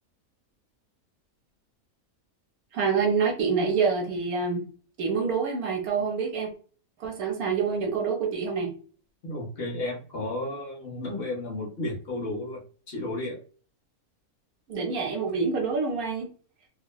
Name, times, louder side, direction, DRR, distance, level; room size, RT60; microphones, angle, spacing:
voice 1, 2.7-4.7 5.0-6.5 7.0-8.7 14.7-16.3, right 5 dB, 75° right, 2 dB, 1.1 m, -26 dB
voice 2, 9.2-13.4, left 1 dB, 50° left, 0 dB, 0.8 m, -33 dB
2.9 x 2.1 x 2.3 m, 0.39 s
omnidirectional pair, 1.6 m